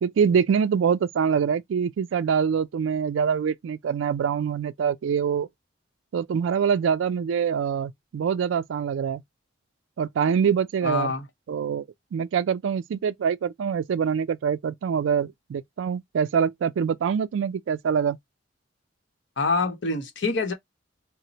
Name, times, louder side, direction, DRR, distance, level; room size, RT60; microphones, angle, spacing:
voice 1, 0.0-5.5 6.1-9.2 10.0-11.1 11.5-11.8 12.1-18.2, right 7 dB, 85° right, 0.3 m, -24 dB
voice 2, 10.8-11.2 19.4-20.5, left 3 dB, 70° left, 0.8 m, -25 dB
4.0 x 2.0 x 2.8 m
head